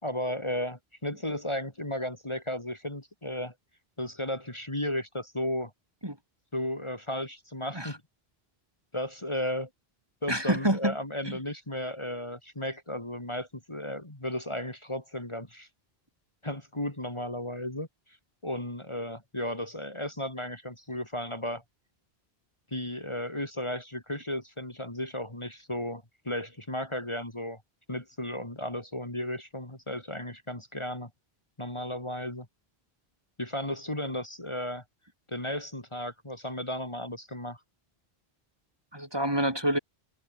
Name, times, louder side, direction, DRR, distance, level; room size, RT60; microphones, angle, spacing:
voice 1, 0.0-3.5 4.0-5.7 6.5-8.0 8.9-9.7 10.2-15.7 16.4-17.9 18.4-21.6 22.7-27.6 27.9-31.1 31.6-32.5 33.4-34.8 35.3-37.6, left 1 dB, 30° left, 2.9 m, -34 dB
voice 2, 10.3-10.9 38.9-39.8, right 1 dB, 25° right, 3.5 m, -27 dB
omnidirectional pair, 1.0 m